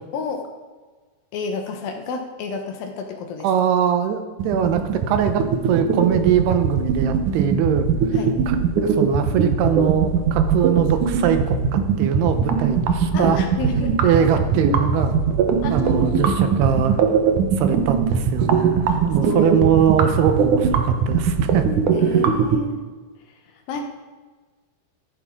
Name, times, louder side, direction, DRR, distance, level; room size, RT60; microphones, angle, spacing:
voice 1, 0.1-0.4 1.3-3.5 8.1-8.3 13.1-14.3 15.6-16.5 18.9-19.6 21.9-22.8 23.7-23.8, left 4 dB, 70° left, 4 dB, 2.6 m, -30 dB
voice 2, 3.4-7.9 8.5-8.6 8.8-13.4 13.7-15.3 15.7-17.0 17.6-21.6, right 9 dB, 85° right, 8 dB, 3.0 m, -22 dB
sound 1, 4.4-22.6, right 6 dB, 70° right, 2.0 m, -20 dB
14.5 x 12.0 x 3.7 m, 1.4 s
omnidirectional pair, 4.6 m